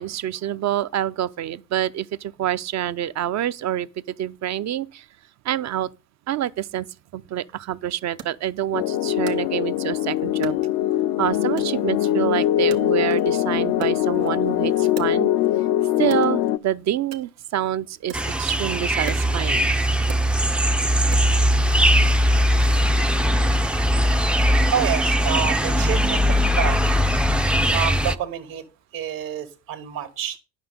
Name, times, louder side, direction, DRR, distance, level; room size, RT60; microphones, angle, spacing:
voice 1, 0.0-3.9 4.2-5.1 5.4-5.9 6.3-6.9 7.1-10.6 11.2-15.3 16.0-19.8, right 11 dB, 45° right, 0.6 m, -27 dB
Wood, 8.2-10.0 10.4-11.2 11.6-13.4 13.7-15.6 16.0-21.6, right 9 dB, 90° right, 1.0 m, -42 dB
sound 1, 8.7-16.6, left 13 dB, 70° left, 0.6 m, -22 dB
sound 2, 18.1-28.2, equal, 5° right, 0.4 m, -20 dB
voice 2, 24.7-28.6 28.9-30.4, right 9 dB, 65° right, 1.8 m, -29 dB
10.0 x 5.7 x 5.2 m
supercardioid pair, 75°, 37 cm